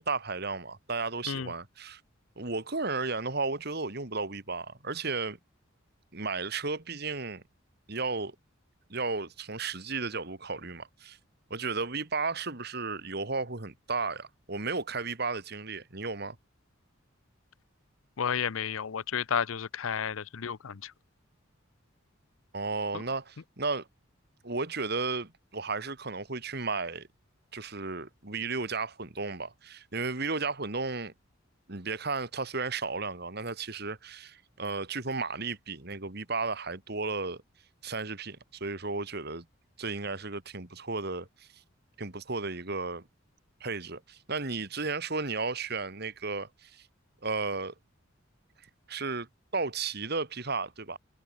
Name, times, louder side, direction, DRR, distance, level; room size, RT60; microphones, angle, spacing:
voice 1, 0.0-2.0 2.4-5.4 6.1-7.4 7.9-8.4 8.9-11.2 11.5-16.4 22.5-23.9 24.4-27.1 27.5-31.1 31.7-37.4 37.8-39.4 39.8-41.3 42.0-43.0 43.6-46.8 47.2-47.7 48.9-49.3 49.5-51.0, right 4 dB, 50° right, 2.2 m, -34 dB
voice 2, 18.2-20.9 22.9-23.0, left 7 dB, 85° left, 0.6 m, -32 dB
head